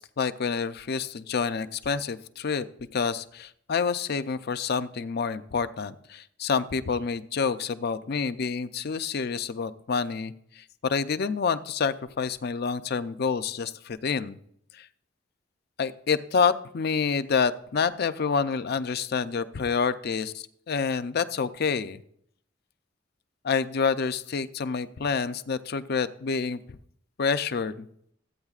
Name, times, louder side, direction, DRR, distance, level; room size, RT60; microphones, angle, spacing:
voice 1, 0.0-2.7 2.9-14.4 14.7-14.9 15.8-22.0 23.4-26.8 27.2-27.9, left 5 dB, 55° left, 13 dB, 0.5 m, -28 dB
15.0 x 8.8 x 2.4 m, 0.67 s
head